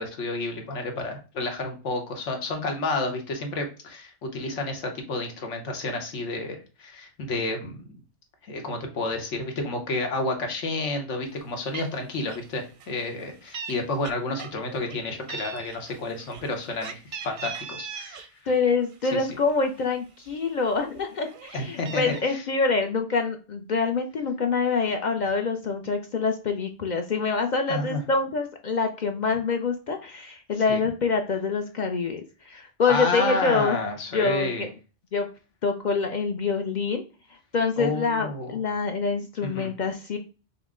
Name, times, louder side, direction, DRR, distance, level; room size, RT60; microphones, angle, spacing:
voice 1, 0.0-8.0 8.5-18.3 19.1-19.3 21.5-22.4 27.7-28.0 30.7-30.8 32.9-34.7 37.8-38.6 39.4-39.7, left 2 dB, 85° left, 4 dB, 1.3 m, -30 dB
Meow, 11.4-11.5 11.7-12.0 12.3-12.5 12.8-13.7 14.0-15.0 15.3-18.3 18.7-19.8 20.3-20.4 20.7-22.2, right 6 dB, 60° right, 0.6 m, -39 dB
voice 2, 18.5-33.8 34.1-34.7 35.1-35.3 35.6-37.0 37.3-40.2, left 4 dB, 55° left, 5 dB, 0.5 m, -26 dB
5.6 x 2.1 x 3.6 m, 0.34 s
omnidirectional pair, 1.2 m